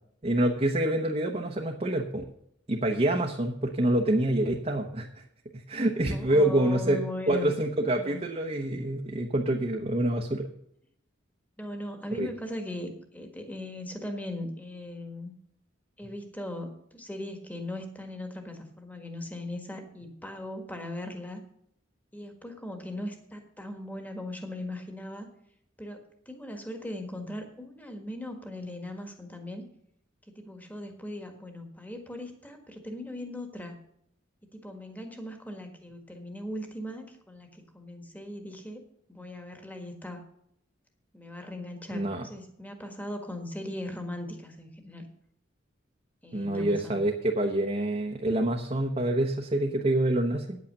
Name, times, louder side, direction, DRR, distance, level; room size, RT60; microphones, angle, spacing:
voice 1, 0.2-2.2 2.7-5.2 5.7-7.0 7.3-10.5 12.2-12.3 41.9-42.2 46.3-50.6, right 1 dB, 30° right, 1 dB, 0.9 m, -26 dB
voice 2, 5.9-7.5 8.0-8.2 11.6-15.3 16.0-21.4 22.1-25.3 25.8-26.0 26.2-29.6 30.3-33.8 34.5-38.8 39.1-40.2 41.1-45.1 46.2-47.0, left 1 dB, 10° left, 5 dB, 1.6 m, -39 dB
9.4 x 8.6 x 6.6 m, 0.73 s
head